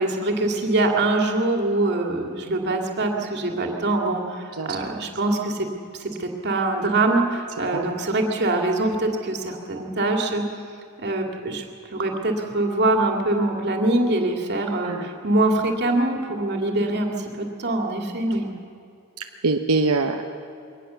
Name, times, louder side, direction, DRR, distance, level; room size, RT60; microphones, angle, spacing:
voice 1, 0.0-5.7 6.0-10.5 11.0-11.6 11.9-18.5, right 2 dB, 50° right, 2 dB, 2.5 m, -23 dB
voice 2, 19.2-20.3, right 3 dB, 85° right, 4 dB, 1.0 m, -24 dB
22.5 x 19.0 x 7.0 m, 2.6 s
head